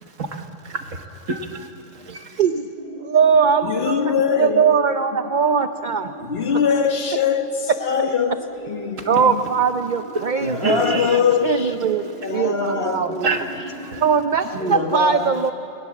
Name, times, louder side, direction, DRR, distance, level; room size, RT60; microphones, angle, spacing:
voice 1, 0.2-1.7 2.1-2.4 10.2-11.2 13.2-13.4 13.8-14.0 14.7-14.8, right 3 dB, 75° right, 1.9 m, -28 dB
sound 1, 2.8-14.3, equal, 30° right, 4.8 m, -39 dB
voice 2, 3.0-6.1 9.1-11.1 11.4-13.1 14.0-15.5, right 6 dB, 45° right, 0.7 m, -20 dB
voice 3, 3.6-4.9 6.2-9.4 10.4-11.7 12.2-13.5 14.6-15.3, left 6 dB, 50° left, 1.4 m, -23 dB
29.0 x 20.5 x 7.5 m
omnidirectional pair, 1.3 m